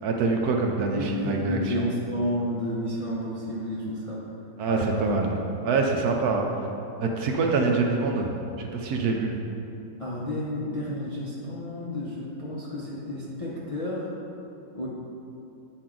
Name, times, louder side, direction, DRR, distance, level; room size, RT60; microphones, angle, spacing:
voice 1, 0.0-1.9 4.6-5.3 5.6-6.5 7.0-9.4, right 3 dB, 70° right, 2 dB, 1.0 m, -25 dB
voice 2, 1.0-4.2 4.7-5.2 10.0-14.1 14.7-14.9, left 1 dB, 40° left, -6 dB, 0.5 m, -31 dB
8.3 x 4.4 x 3.8 m, 2.8 s
omnidirectional pair, 1.9 m